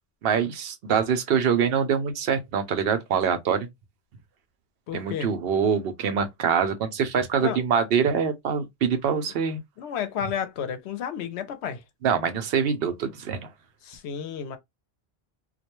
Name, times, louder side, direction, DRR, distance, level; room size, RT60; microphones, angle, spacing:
voice 1, 0.2-3.7 4.9-9.6 12.0-13.5, right 7 dB, 70° right, 0.8 m, -24 dB
voice 2, 4.9-5.3 7.4-7.6 9.8-11.8 13.8-14.6, left 8 dB, 85° left, 0.9 m, -31 dB
2.2 x 2.1 x 2.9 m
omnidirectional pair, 1.1 m